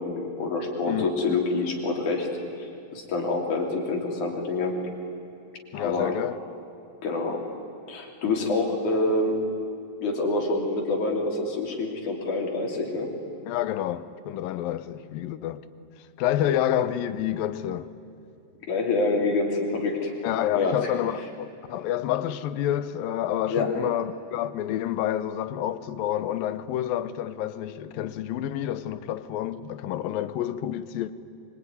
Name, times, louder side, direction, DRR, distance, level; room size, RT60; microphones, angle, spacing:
voice 1, 0.0-2.3 2.6-4.8 5.7-6.2 7.0-7.4 7.9-9.5 10.0-13.2 18.7-20.1 20.5-20.9 23.5-23.8, left 3 dB, 60° left, 4.6 m, -27 dB
voice 2, 5.7-6.4 13.5-15.6 16.2-17.9 20.2-31.1, left 11 dB, 85° left, 2.6 m, -28 dB
25.0 x 24.5 x 9.7 m
omnidirectional pair, 4.0 m